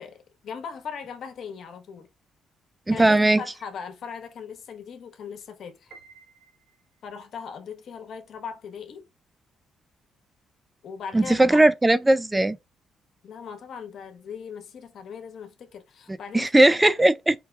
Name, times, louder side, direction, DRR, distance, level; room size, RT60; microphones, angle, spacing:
voice 1, 0.0-2.1 2.9-5.9 7.0-9.0 10.8-11.6 13.2-17.0, left 6 dB, 65° left, 1.0 m, -39 dB
voice 2, 2.9-3.4 11.1-12.6 16.3-17.3, right 2 dB, 15° right, 0.3 m, -18 dB
Piano, 5.9-7.2, right 4 dB, 65° right, 1.1 m, -52 dB
4.6 x 2.3 x 3.2 m
cardioid pair, 90°, 0 cm